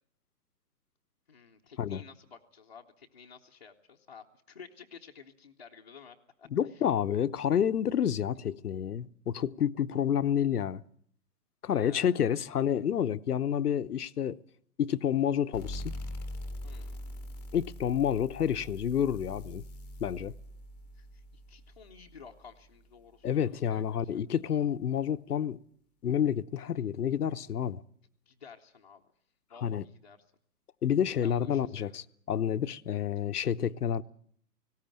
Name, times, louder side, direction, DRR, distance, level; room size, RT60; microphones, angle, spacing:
voice 1, 1.3-6.8 11.7-12.2 16.6-17.0 20.9-23.8 28.3-29.0 29.5-30.2 31.2-32.0, left 6 dB, 30° left, 0.8 m, -53 dB
voice 2, 6.5-10.8 11.6-14.4 14.8-15.9 17.5-19.6 20.0-20.3 23.2-25.6 26.0-27.8 29.6-29.8 30.8-34.0, left 9 dB, 65° left, 0.9 m, -29 dB
sound 1, 15.5-22.8, left 1 dB, 5° left, 1.0 m, -43 dB
19.5 x 17.5 x 8.9 m
hypercardioid pair, 170°, 49 cm